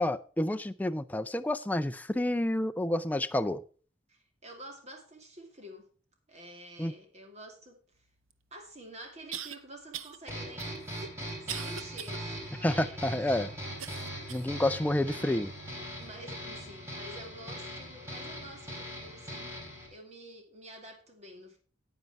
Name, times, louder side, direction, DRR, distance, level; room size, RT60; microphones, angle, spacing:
voice 1, 0.0-3.6 6.8-6.9 12.6-13.5 14.3-15.5, left 1 dB, 10° left, 10 dB, 0.4 m, -29 dB
voice 2, 4.1-5.9 6.3-8.1 8.5-11.0 11.4-13.2 16.0-19.5 19.9-21.6, right 1 dB, 35° right, 4 dB, 2.3 m, -49 dB
sound 1, 8.3-8.4 9.3-9.6 9.9-10.2 10.6-12.2 12.7-12.8 13.8-14.5 15.1-15.2 16.0-16.1, right 9 dB, 90° right, 0.8 m, -41 dB
sound 2, 10.3-19.9, equal, 15° right, 3.7 m, -40 dB
9.4 x 9.1 x 4.6 m, 0.39 s
head